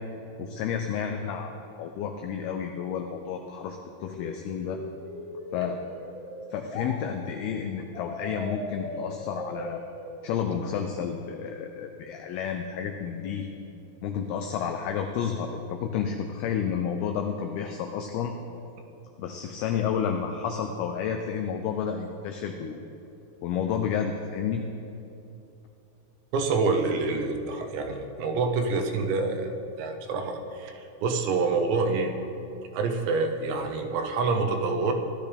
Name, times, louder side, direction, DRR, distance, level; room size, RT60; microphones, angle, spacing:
voice 1, 0.4-4.8 5.5-5.8 6.5-9.8 10.2-13.5 14.0-18.3 19.2-22.8 23.4-24.6, left 7 dB, 90° left, 5 dB, 2.2 m, -31 dB
sound 1, 4.1-6.9 7.9-10.9, left 1 dB, 65° left, 3.8 m, -39 dB
voice 2, 26.3-32.1 32.7-34.9, right 4 dB, 80° right, 4 dB, 3.1 m, -27 dB
17.0 x 11.5 x 3.4 m, 2.8 s
omnidirectional pair, 5.2 m